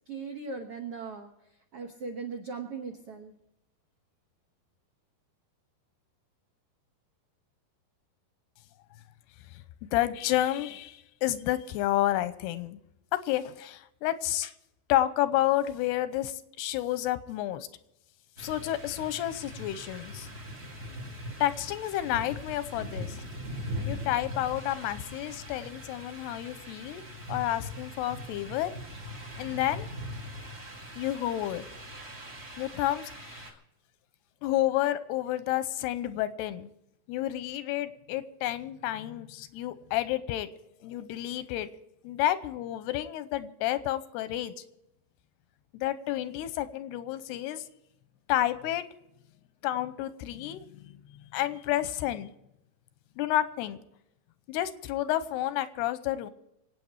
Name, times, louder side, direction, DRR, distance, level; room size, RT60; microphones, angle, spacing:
voice 1, 0.1-1.3 1.7-3.3, right 4 dB, 90° right, 3 dB, 1.3 m, -38 dB
voice 2, 9.9-12.8 13.1-14.5 14.9-17.7 18.4-20.3 21.4-23.2 23.9-27.0 27.3-28.7 29.4-29.9 31.0-31.7 32.6-33.5 34.4-36.7 37.1-40.5 40.8-41.7 42.0-44.5 45.7-47.6 48.3-48.8 49.6-52.3 53.2-53.8 54.5-56.3, left 13 dB, 90° left, 13 dB, 2.8 m, -30 dB
sound 1, 18.4-33.5, left 1 dB, 45° right, 0.8 m, -41 dB
25.5 x 8.7 x 4.8 m, 0.83 s
omnidirectional pair, 4.7 m